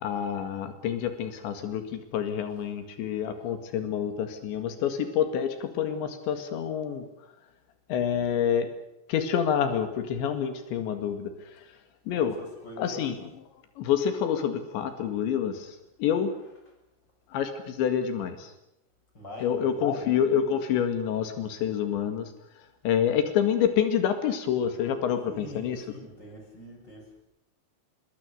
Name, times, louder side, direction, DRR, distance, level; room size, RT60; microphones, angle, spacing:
voice 1, 0.0-7.0 7.9-8.7 9.1-11.3 12.1-12.3 12.8-13.2 13.8-15.5 16.0-16.3 17.3-18.4 19.4-22.3 22.8-25.8, left 8 dB, 85° left, 9 dB, 4.3 m, -27 dB
voice 2, 12.1-13.0 16.4-16.5 19.1-20.2 25.3-27.2, equal, 25° left, 2 dB, 8.0 m, -45 dB
25.5 x 22.0 x 6.8 m, 0.86 s
omnidirectional pair, 5.0 m